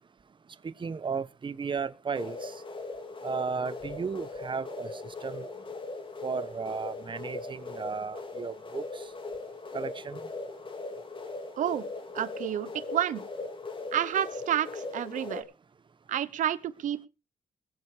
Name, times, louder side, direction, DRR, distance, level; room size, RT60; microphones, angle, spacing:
voice 1, 0.6-2.5 3.2-4.9 5.2-5.5 6.2-9.0 9.7-10.2, right 5 dB, 40° right, 1.0 m, -34 dB
sound 1, 2.1-15.4, left 3 dB, 40° left, 2.9 m, -39 dB
voice 2, 12.1-13.2 13.9-15.4 16.1-17.1, right 10 dB, 85° right, 1.0 m, -30 dB
20.5 x 7.1 x 5.0 m
cardioid pair, 85°, 13 cm